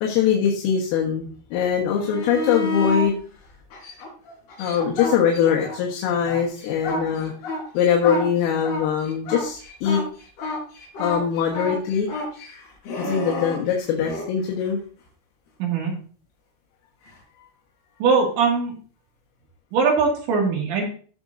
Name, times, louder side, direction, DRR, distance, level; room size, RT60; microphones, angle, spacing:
voice 1, 0.0-3.2 4.6-7.3 7.8-10.0 11.0-12.1 13.0-14.8, left 8 dB, 80° left, -1 dB, 4.0 m, -22 dB
sound 1, 1.9-3.1 3.7-5.8 6.1-14.3 17.1-17.2, left 2 dB, 55° left, 6.0 m, -30 dB
voice 2, 15.6-15.9 18.0-18.7 19.7-20.8, right 5 dB, 65° right, -1 dB, 4.3 m, -21 dB
17.5 x 6.2 x 2.6 m, 0.42 s
omnidirectional pair, 5.9 m